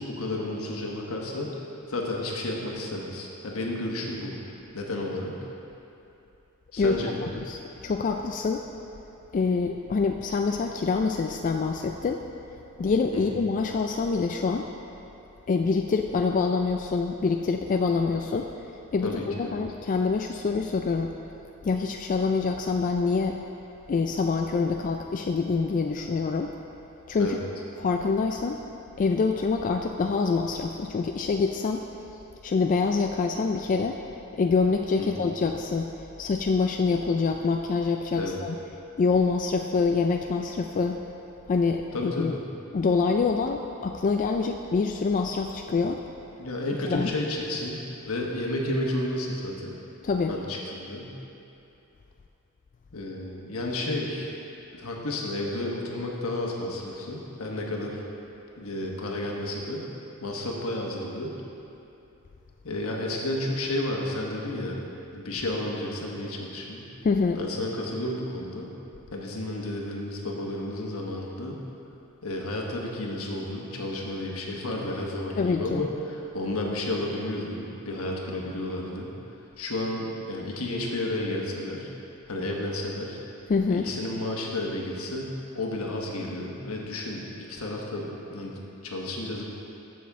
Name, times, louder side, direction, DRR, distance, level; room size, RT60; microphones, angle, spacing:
voice 1, 0.0-1.5 1.9-4.4 4.7-5.4 6.7-7.3 13.1-13.4 19.0-19.5 27.2-27.4 35.0-35.2 38.1-38.4 41.9-42.4 46.4-49.8 50.3-51.2 52.9-54.3 54.7-58.0 58.6-59.9 60.2-61.3 62.6-64.8 65.1-66.9 67.3-68.7 69.1-71.6 72.2-79.1 79.6-81.9 82.3-83.2 83.7-88.5 88.8-89.4, left 1 dB, 80° left, -1 dB, 1.3 m, -32 dB
voice 2, 7.4-8.6 9.3-12.2 12.8-14.7 15.5-18.5 18.9-21.1 21.6-23.4 23.9-26.6 27.1-27.4 27.8-28.6 29.0-31.8 32.4-34.0 34.4-35.9 36.2-38.6 39.0-41.0 41.5-42.3 42.7-46.0 46.9-47.1 50.0-50.3 67.0-67.4 75.4-75.8 83.5-83.9, left 4 dB, 40° left, 3 dB, 0.3 m, -25 dB
14.0 x 6.2 x 3.6 m, 2.9 s
head